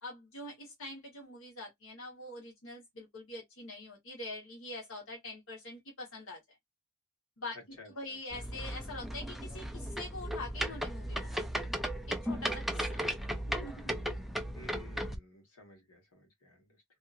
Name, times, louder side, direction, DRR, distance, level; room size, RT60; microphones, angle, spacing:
voice 1, 0.0-6.6 7.4-7.6 7.9-11.4 12.1-13.0 13.5-13.9, left 2 dB, 65° left, 1.3 m, -44 dB
voice 2, 7.8-8.2 14.5-16.8, left 1 dB, 80° left, 1.5 m, -55 dB
sound 1, 8.3-15.2, equal, ahead, 0.3 m, -36 dB
2.8 x 2.6 x 2.5 m
head